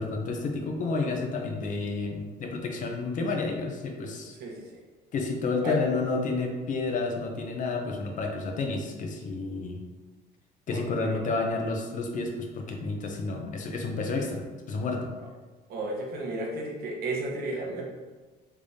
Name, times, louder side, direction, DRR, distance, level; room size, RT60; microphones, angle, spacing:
voice 1, 0.0-4.3 5.1-9.8 10.7-15.1, left 3 dB, 50° left, 2 dB, 0.6 m, -30 dB
voice 2, 10.7-11.2 15.7-17.9, right 2 dB, 65° right, -1 dB, 0.9 m, -33 dB
3.4 x 3.3 x 2.6 m, 1.3 s
cardioid pair, 110°, 17 cm